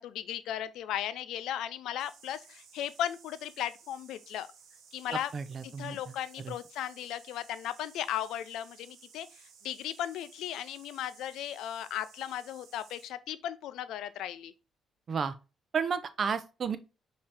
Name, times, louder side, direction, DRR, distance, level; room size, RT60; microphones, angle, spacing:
voice 1, 0.0-4.5 4.9-5.3 5.6-14.5, left 11 dB, 85° left, 0.4 m, -36 dB
sound 1, 2.0-13.1, right 6 dB, 75° right, 0.9 m, -57 dB
voice 2, 5.1-6.1 6.4-6.5 15.1-15.3 15.7-16.8, right 6 dB, 50° right, 0.6 m, -32 dB
5.5 x 2.8 x 3.3 m
cardioid pair, 90°, 0 cm